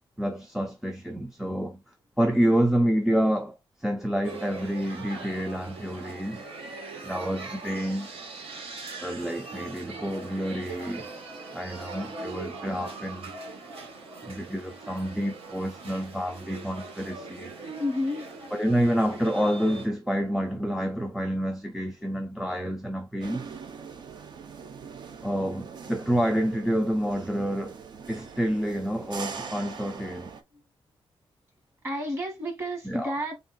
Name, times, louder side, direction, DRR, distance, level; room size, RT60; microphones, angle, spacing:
voice 1, 0.2-6.5 7.0-8.1 9.0-11.1 11.5-13.4 14.2-17.5 18.5-23.5 25.2-27.8 28.1-30.4 32.8-33.1, equal, 5° right, 0.4 m, -28 dB
sound 1, 4.2-19.9, right 3 dB, 90° right, 1.6 m, -41 dB
voice 2, 17.8-18.5 31.8-33.4, left 1 dB, 30° right, 1.6 m, -30 dB
sound 2, 23.2-30.4, right 6 dB, 50° right, 0.6 m, -42 dB
3.6 x 2.4 x 3.8 m
wide cardioid pair, 165°, 10 cm